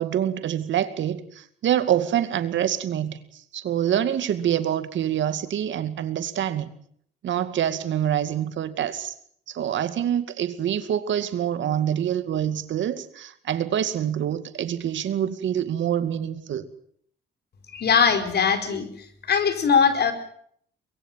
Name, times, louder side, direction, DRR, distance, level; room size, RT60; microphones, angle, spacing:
voice 1, 0.0-3.2 3.5-6.7 7.2-9.1 9.5-16.7, right 10 dB, 70° right, 11 dB, 2.3 m, -26 dB
voice 2, 17.7-18.9 19.3-20.1, left 6 dB, 55° left, 9 dB, 4.9 m, -20 dB
24.0 x 22.0 x 7.5 m, 0.63 s
cardioid pair, 90°, 20 cm